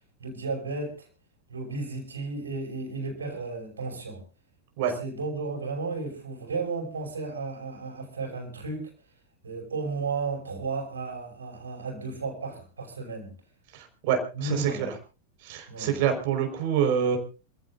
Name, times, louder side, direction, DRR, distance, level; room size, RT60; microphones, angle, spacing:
voice 1, 0.2-1.1 1.5-4.2 4.8-8.9 9.4-13.3 14.3-14.9 15.7-16.0, right 3 dB, 70° right, 2 dB, 5.9 m, -34 dB
voice 2, 13.7-14.9 15.4-17.2, right 8 dB, 50° right, 5 dB, 4.6 m, -26 dB
27.0 x 15.5 x 2.6 m, 0.33 s
figure-of-eight pair, 90°, 0 cm